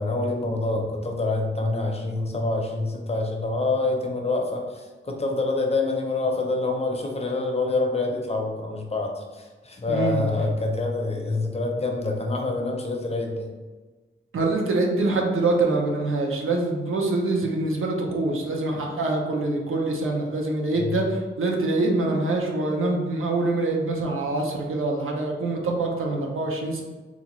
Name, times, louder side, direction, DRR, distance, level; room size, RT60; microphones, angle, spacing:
voice 1, 0.0-13.5 20.7-21.0, left 2 dB, 30° left, 1 dB, 0.5 m, -26 dB
voice 2, 9.9-10.3 14.3-26.8, right 2 dB, 90° right, 0 dB, 0.7 m, -25 dB
3.9 x 2.4 x 3.0 m, 1.3 s
wide cardioid pair, 155°, 21 cm